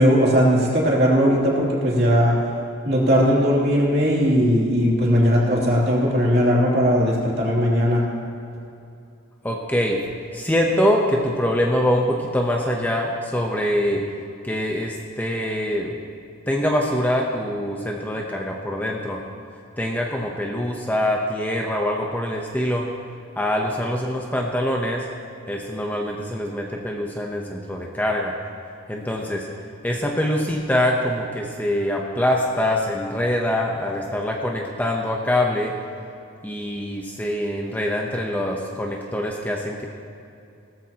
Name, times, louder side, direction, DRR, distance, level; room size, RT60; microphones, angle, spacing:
voice 1, 0.0-2.4 2.8-8.0, equal, 50° right, -4 dB, 2.9 m, -18 dB
voice 2, 9.4-10.0 10.3-14.0 14.4-15.9 16.5-19.2 19.8-22.8 23.4-25.0 25.5-28.3 28.9-29.5 29.8-35.7 36.4-39.9, left 1 dB, 10° left, 0 dB, 0.8 m, -24 dB
18.0 x 14.0 x 2.9 m, 2.6 s
head